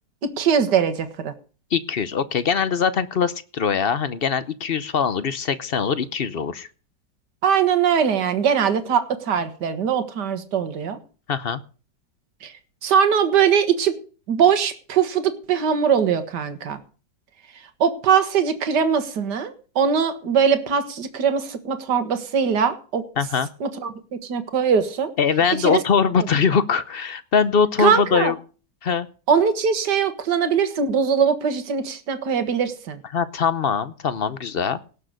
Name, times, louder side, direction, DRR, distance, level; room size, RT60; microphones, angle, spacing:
voice 1, 0.4-1.3 7.4-11.0 12.4-12.5 12.8-14.0 14.3-16.8 17.8-23.0 23.6-23.9 24.2-25.1 25.6-25.8 26.2-26.3 27.8-28.3 29.3-33.0, right 7 dB, 65° right, 9 dB, 2.1 m, -21 dB
voice 2, 1.7-6.7 11.3-11.6 23.2-23.5 25.2-28.4 28.8-29.1 33.1-34.8, left 6 dB, 50° left, 14 dB, 0.6 m, -22 dB
18.0 x 6.5 x 6.5 m, 0.37 s
omnidirectional pair, 2.0 m